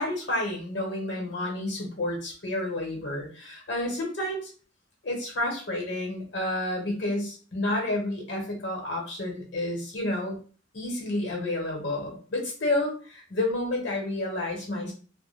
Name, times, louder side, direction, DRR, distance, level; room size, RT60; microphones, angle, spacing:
voice 1, 0.0-4.5 5.0-10.4 10.7-14.9, left 1 dB, 60° left, 1 dB, 0.9 m, -30 dB
2.2 x 2.1 x 3.1 m, 0.39 s
head